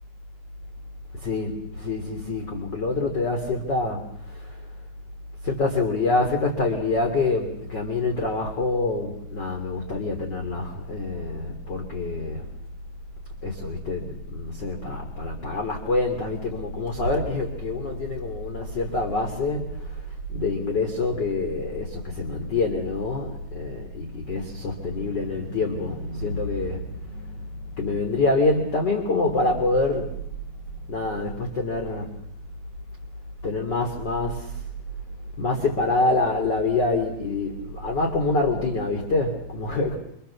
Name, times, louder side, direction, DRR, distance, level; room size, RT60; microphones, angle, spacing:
voice 1, 1.1-4.7 5.4-12.5 13.4-32.1 33.4-34.7 35.4-39.9, left 3 dB, 30° left, 3 dB, 3.3 m, -26 dB
29.0 x 26.0 x 7.2 m, 0.72 s
omnidirectional pair, 4.5 m